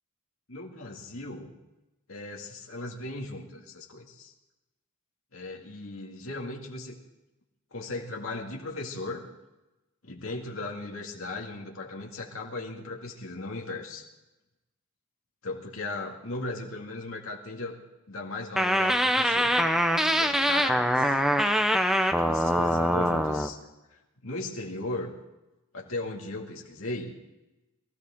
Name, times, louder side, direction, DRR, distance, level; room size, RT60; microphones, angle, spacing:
voice 1, 0.5-1.5 2.1-4.3 5.3-7.0 7.7-9.2 10.0-14.1 15.4-17.7 18.1-19.6 20.0-21.2 22.2-23.6 24.2-25.1 25.7-27.1, left 2 dB, 70° left, 0 dB, 2.2 m, -37 dB
sound 1, 18.6-23.5, equal, ahead, 0.8 m, -24 dB
22.5 x 14.0 x 3.7 m, 1.0 s
head